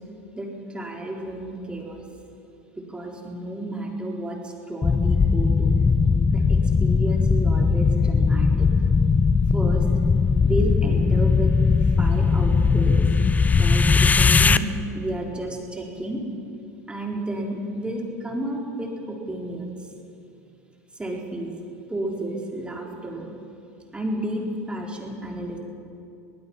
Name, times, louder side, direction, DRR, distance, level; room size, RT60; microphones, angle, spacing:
voice 1, 0.4-2.0 2.9-5.7 6.3-8.9 9.5-9.9 10.4-11.5 11.8-12.9 13.6-16.2 16.9-19.9 20.9-21.5 21.9-23.3 23.9-25.6, right 1 dB, 10° right, -1 dB, 4.1 m, -31 dB
sound 1, 4.8-14.6, left 5 dB, 20° left, 0.7 m, -19 dB
23.5 x 19.0 x 5.8 m, 2.5 s
hypercardioid pair, 85°, 9 cm